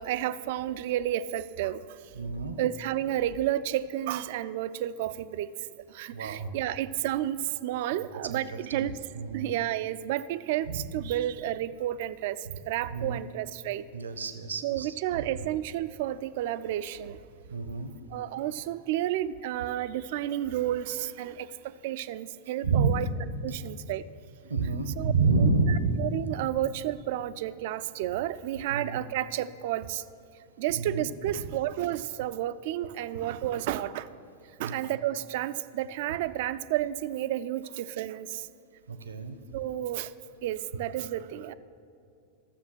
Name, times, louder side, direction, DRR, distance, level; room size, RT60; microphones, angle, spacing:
voice 1, 0.0-1.8 2.6-5.5 5.9-8.9 9.3-12.4 12.7-13.8 14.6-17.2 18.1-21.5 21.8-23.1 23.4-24.0 25.0-25.1 25.4-30.0 30.6-34.1 34.6-38.3 39.5-40.1 40.4-41.5, right 12 dB, 50° right, 15 dB, 0.4 m, -31 dB
voice 2, 2.1-2.6 6.1-6.5 7.9-8.4 8.7-8.8 9.1-9.5 10.7-10.8 12.9-13.2 13.9-15.0 17.5-17.9 22.6-22.9 24.5-25.9 28.7-29.0 30.7-31.1 34.6-34.7 38.9-39.4, right 4 dB, 70° right, 10 dB, 0.8 m, -28 dB
13.0 x 7.1 x 6.2 m, 2.4 s
figure-of-eight pair, 90°, 0 cm